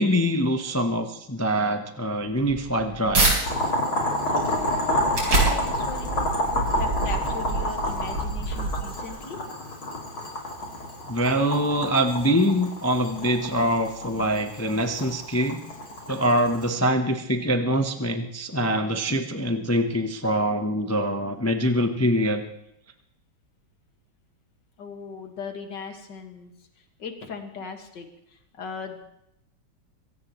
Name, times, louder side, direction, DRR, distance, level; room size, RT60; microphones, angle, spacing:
voice 1, 0.0-3.3 11.1-15.6 16.1-22.4, equal, 25° left, 5 dB, 0.3 m, -24 dB
sound 1, 2.2-3.4 3.9-9.2, right 2 dB, 75° right, 5.2 m, -27 dB
Boiling, 3.4-16.7, left 1 dB, 80° left, 4.3 m, -29 dB
voice 2, 4.3-9.4 24.8-26.5 27.0-29.0, left 5 dB, 60° left, 4 dB, 2.4 m, -38 dB
24.0 x 17.0 x 3.1 m, 0.80 s
omnidirectional pair, 2.2 m